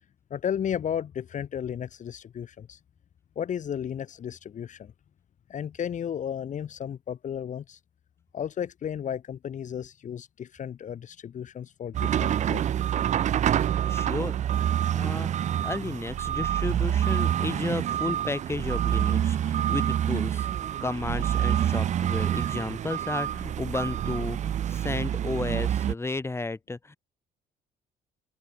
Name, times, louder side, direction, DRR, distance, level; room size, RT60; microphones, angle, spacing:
voice 1, 0.3-2.8 3.4-4.9 5.5-7.8 8.3-12.6, left 9 dB, 45° left, 2.7 m, -34 dB
sound 1, 11.9-25.9, right 10 dB, 45° right, 0.6 m, -27 dB
voice 2, 13.9-14.4 14.9-15.3 15.6-20.5 20.8-27.0, left 3 dB, 15° left, 3.7 m, -33 dB
cardioid pair, 110°, 17 cm